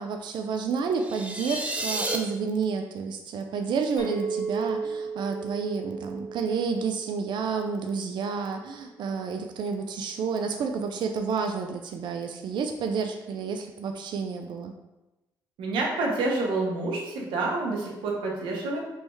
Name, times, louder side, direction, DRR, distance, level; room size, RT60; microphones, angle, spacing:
voice 1, 0.0-14.7, right 5 dB, 70° right, 4 dB, 0.4 m, -30 dB
sound 1, 1.0-2.2, right 2 dB, 15° right, 0.6 m, -31 dB
Chink clink, 4.0-8.5, right 5 dB, 70° left, 0.7 m, -35 dB
voice 2, 15.6-18.8, right 3 dB, 85° right, -1 dB, 0.8 m, -28 dB
3.4 x 3.1 x 3.1 m, 1.0 s
supercardioid pair, 65°, 8 cm